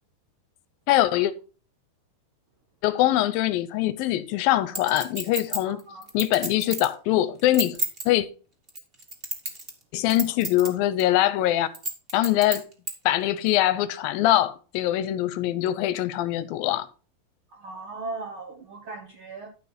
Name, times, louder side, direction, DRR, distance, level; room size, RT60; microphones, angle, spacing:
voice 1, 0.9-1.3 2.8-5.8 6.1-7.8 8.1-8.3 9.9-11.7 12.1-12.6 13.1-16.9, left 14 dB, 80° left, 2.3 m, -23 dB
Chink clink, 4.7-6.9 7.4-8.0 8.7-9.8 10.1-10.7 11.0-11.1 11.7-12.9 13.5-13.6, right 2 dB, 20° right, 1.8 m, -30 dB
voice 2, 5.6-6.0 17.5-19.5, right 3 dB, 65° right, 1.3 m, -38 dB
12.0 x 5.7 x 4.3 m
omnidirectional pair, 4.3 m